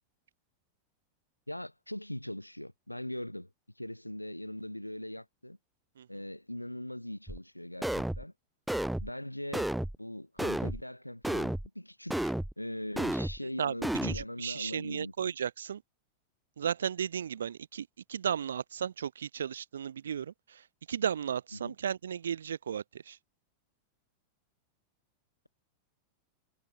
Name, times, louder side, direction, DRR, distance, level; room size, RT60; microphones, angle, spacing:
voice 1, 1.5-3.5 3.8-5.6 6.1-8.3 9.0-9.7 10.0-15.3 21.5-21.7, left 1 dB, 90° left, 7.6 m, -41 dB
sound 1, 7.3-7.4 7.8-8.2 8.7-9.1 9.5-10.0 10.4-10.8 11.2-11.7 12.1-12.5 13.0-13.4 13.8-14.2, right 1 dB, 5° right, 1.0 m, -32 dB
voice 2, 14.0-15.8 16.6-23.2, right 8 dB, 65° right, 6.3 m, -35 dB
figure-of-eight pair, 90°, 0 cm